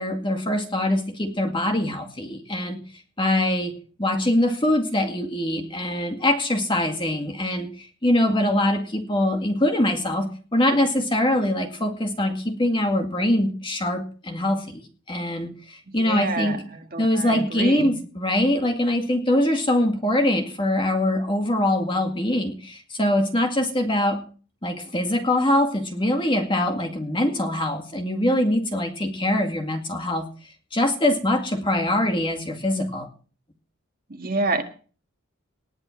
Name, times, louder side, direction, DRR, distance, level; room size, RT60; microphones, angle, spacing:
voice 1, 0.0-2.8 3.2-3.7 4.0-16.6 17.0-24.2 24.6-30.3 30.7-33.1, left 1 dB, 25° left, 4 dB, 2.1 m, -23 dB
voice 2, 15.9-17.9 34.1-34.6, right 3 dB, 45° right, 5 dB, 1.7 m, -28 dB
19.0 x 8.8 x 4.5 m, 0.39 s
head